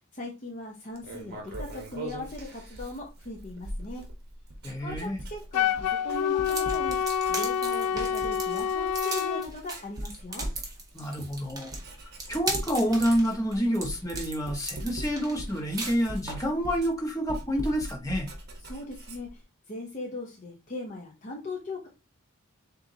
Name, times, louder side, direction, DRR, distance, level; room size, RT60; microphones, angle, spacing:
voice 1, 0.1-4.0 4.8-7.0 7.3-10.5 18.6-21.9, left 2 dB, 35° left, 0.7 m, -39 dB
Writing, 1.0-7.7 7.9-9.1 9.5-19.4, right 1 dB, 45° right, 1.1 m, -40 dB
voice 2, 4.6-5.2 10.9-11.7 12.3-18.3, equal, 15° left, 1.2 m, -28 dB
Wind instrument woodwind instrument, 5.5-9.5, left 8 dB, 85° left, 0.3 m, -27 dB
sound 1, 6.4-16.5, right 2 dB, 15° right, 1.1 m, -37 dB
7.1 x 2.7 x 2.7 m
head